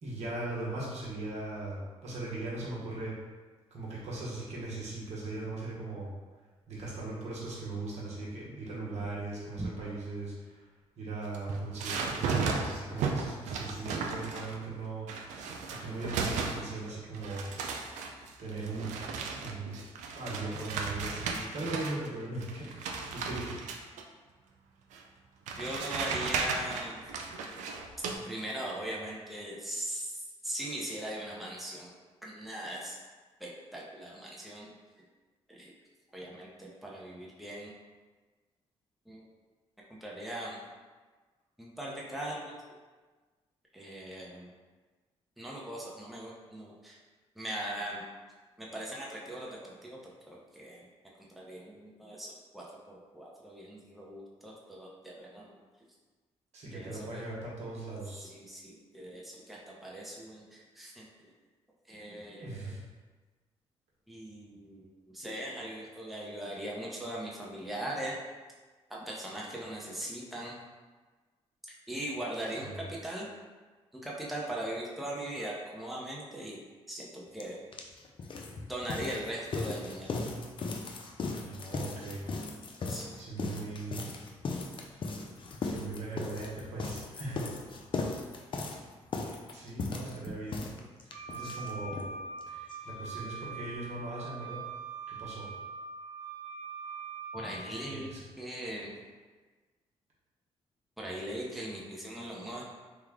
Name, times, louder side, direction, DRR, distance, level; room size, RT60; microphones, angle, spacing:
voice 1, 0.0-3.2 3.7-6.1 6.7-10.7 11.0-15.1 15.8-17.5 18.4-18.9 19.4-19.9 20.1-22.8 23.1-23.5 56.5-58.3 62.4-62.8 72.6-72.8 81.4-82.2 82.8-84.1 85.6-87.5 89.5-90.7 91.1-92.1 92.5-94.6 95.1-95.5 97.9-98.2, right 2 dB, 65° right, -5 dB, 1.1 m, -39 dB
sound 1, 11.3-14.7 15.1-16.9 17.1-22.1 22.4-24.0 24.9-25.0 25.5-28.2, right 5 dB, 90° right, 0.4 m, -35 dB
voice 2, 25.6-27.0 28.2-31.9 32.2-33.0 33.4-34.7 35.5-35.7 36.1-37.7 39.1-39.2 40.0-40.6 41.6-42.6 43.7-44.5 45.4-47.0 47.4-48.1 48.6-50.0 50.3-50.9 51.2-55.5 56.6-57.2 58.2-61.3 61.9-62.7 64.1-68.2 68.9-70.5 71.9-73.3 74.0-76.6 76.9-77.6 78.7-80.2 82.9-83.1 97.3-98.1 98.4-98.9 101.0-102.6, right 1 dB, ahead, -4 dB, 0.8 m, -40 dB
sound 2, 77.4-77.5 77.7-92.1 92.4-92.5 92.7-92.8 93.1-93.2, left 3 dB, 45° left, 0.5 m, -37 dB
Wind instrument woodwind instrument, 91.1-97.9, right 4 dB, 40° right, 1.1 m, -42 dB
3.4 x 2.3 x 3.5 m, 1.3 s
cardioid pair, 75°, 12 cm